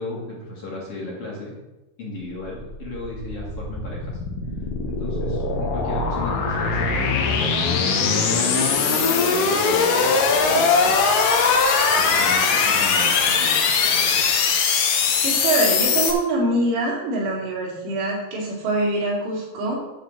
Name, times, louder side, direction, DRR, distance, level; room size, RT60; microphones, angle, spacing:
voice 1, 0.0-1.6 2.0-4.2 4.8-11.0 12.0-14.3, left 2 dB, 45° left, -4 dB, 2.4 m, -35 dB
sound 1, 2.5-16.1, left 5 dB, 65° left, 2.4 m, -20 dB
voice 2, 15.2-19.8, right 2 dB, 90° right, -4 dB, 5.0 m, -24 dB
9.7 x 5.1 x 7.9 m, 1.0 s
omnidirectional pair, 4.8 m